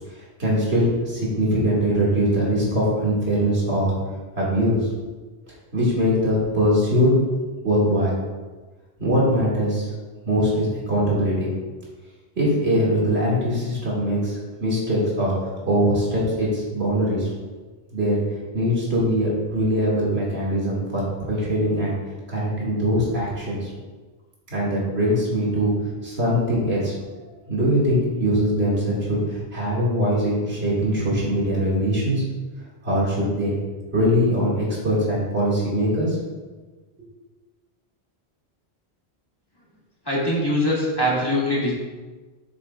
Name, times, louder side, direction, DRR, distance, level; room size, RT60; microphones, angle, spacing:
voice 1, 0.1-3.9 4.4-4.9 5.7-7.1 7.6-8.2 9.0-9.9 10.2-11.5 12.4-17.3 17.9-18.2 18.5-21.9 22.3-23.7 24.5-25.7 26.0-27.0 27.5-32.2 32.8-33.6 33.9-36.2, equal, 80° right, -6 dB, 2.3 m, -22 dB
voice 2, 40.1-41.7, left 1 dB, 20° left, -5 dB, 1.8 m, -22 dB
8.9 x 6.7 x 2.3 m, 1.3 s
omnidirectional pair, 1.1 m